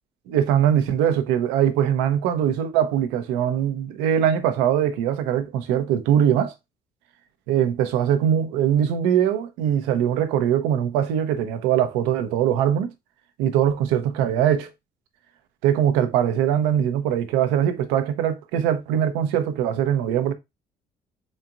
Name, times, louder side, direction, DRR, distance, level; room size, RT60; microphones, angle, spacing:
voice 1, 0.3-6.5 7.5-12.9 13.4-14.7 15.6-20.3, right 10 dB, 85° right, 0.8 m, -21 dB
4.5 x 4.2 x 2.5 m
hypercardioid pair, 60°, 17 cm